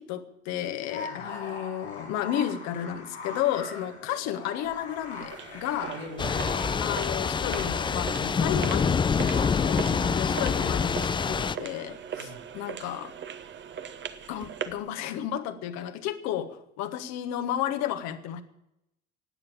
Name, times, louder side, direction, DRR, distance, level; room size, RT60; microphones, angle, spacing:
voice 1, 0.0-5.9 6.8-13.1 14.3-18.4, left 11 dB, 55° left, 9 dB, 1.4 m, -32 dB
sound 1, 0.7-10.9, left 3 dB, 80° left, 5.7 m, -41 dB
sound 2, 4.6-14.9, right 8 dB, 35° right, 1.2 m, -41 dB
voice 2, 5.8-6.8 9.8-10.2 12.1-12.4, right 2 dB, 70° right, -1 dB, 4.0 m, -42 dB
Thunder / Rain, 6.2-11.6, left 6 dB, 15° left, 0.5 m, -26 dB
15.5 x 9.5 x 8.8 m, 0.85 s
figure-of-eight pair, 65°, 33 cm